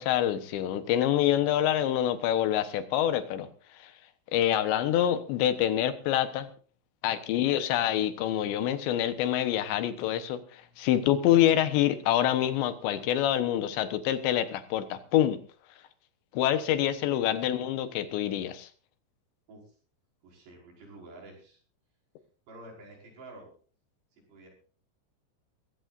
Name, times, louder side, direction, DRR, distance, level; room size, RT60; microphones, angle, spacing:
voice 1, 0.0-3.5 3.8-3.9 4.3-6.5 7.0-15.4 16.3-18.7, left 11 dB, 85° left, 10 dB, 3.5 m, -26 dB
voice 2, 20.2-21.6 22.5-23.5 24.2-24.5, right 2 dB, 70° right, -1 dB, 7.5 m, -49 dB
22.5 x 15.0 x 2.6 m, 0.40 s
omnidirectional pair, 5.0 m